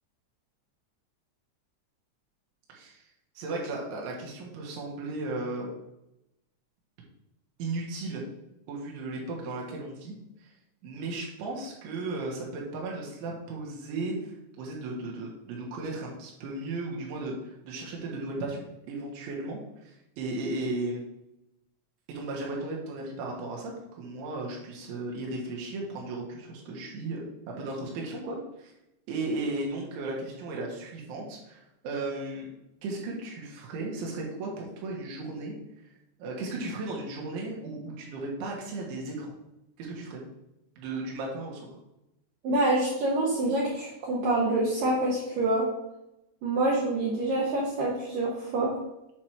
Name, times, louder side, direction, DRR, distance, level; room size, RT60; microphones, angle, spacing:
voice 1, 2.7-3.0 3.4-5.7 7.6-8.2 8.7-10.1 10.4-10.5 10.8-21.0 22.1-28.7 29.1-32.5 32.8-35.5 36.2-39.3 39.8-40.2 40.8-41.8, right 2 dB, 85° right, -2 dB, 3.9 m, -35 dB
voice 2, 42.4-45.6 46.4-48.7, right 2 dB, 70° right, -4 dB, 2.2 m, -26 dB
8.5 x 3.2 x 5.9 m, 0.88 s
omnidirectional pair, 5.3 m